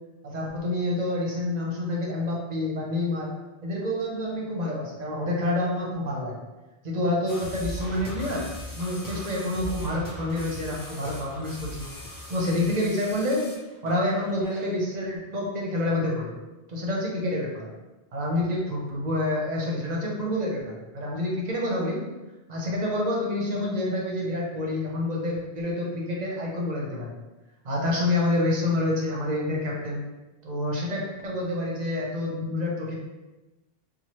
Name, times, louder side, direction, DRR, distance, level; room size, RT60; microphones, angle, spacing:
voice 1, 0.2-3.3 3.6-6.3 6.8-8.5 8.7-11.9 12.3-13.5 13.8-16.4 16.7-17.7 18.1-22.0 22.5-27.2 27.6-30.0 30.4-32.9, left 1 dB, 45° right, -3 dB, 0.7 m, -28 dB
sound 1, 7.3-14.6, left 1 dB, 30° left, 0.4 m, -39 dB
3.0 x 2.3 x 2.9 m, 1.1 s
omnidirectional pair, 1.2 m